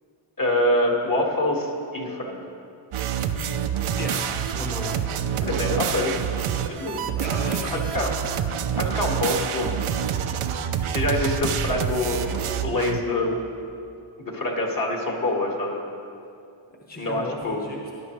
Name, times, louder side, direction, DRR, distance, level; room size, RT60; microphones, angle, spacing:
voice 1, 0.4-2.4 5.4-6.1 6.7-7.0 7.9-8.1 8.8-9.8 10.9-13.4 14.2-15.8 17.0-17.6, left 1 dB, 40° left, -1 dB, 1.9 m, -25 dB
sound 1, 2.9-13.0, right 8 dB, 80° right, 0.7 m, -27 dB
voice 2, 4.6-5.0 7.2-8.2 16.9-17.9, left 2 dB, 20° left, -2 dB, 1.2 m, -34 dB
19.0 x 10.5 x 3.2 m, 2.6 s
wide cardioid pair, 110°, 50 cm